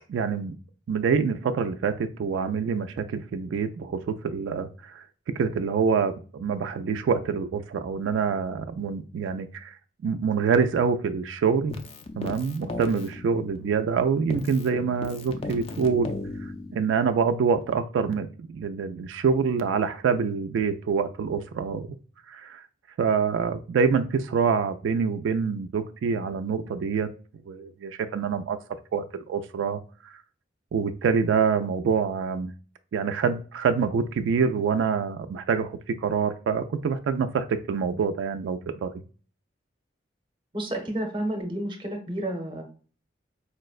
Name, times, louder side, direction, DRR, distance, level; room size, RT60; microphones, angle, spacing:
voice 1, 0.1-0.6 0.9-5.0 5.4-9.8 10.0-11.8 12.2-16.1 16.7-21.9 22.3-22.6 23.0-27.1 27.5-28.6 28.9-29.8 30.7-32.5 32.9-38.9, right 5 dB, 85° right, 10 dB, 0.3 m, -26 dB
Keyboard (musical), 11.7-14.0 14.3-17.1, left 2 dB, 30° left, 0.3 m, -37 dB
voice 2, 40.5-42.6, right 1 dB, 25° right, 2 dB, 0.7 m, -30 dB
4.4 x 2.0 x 2.3 m, 0.39 s
head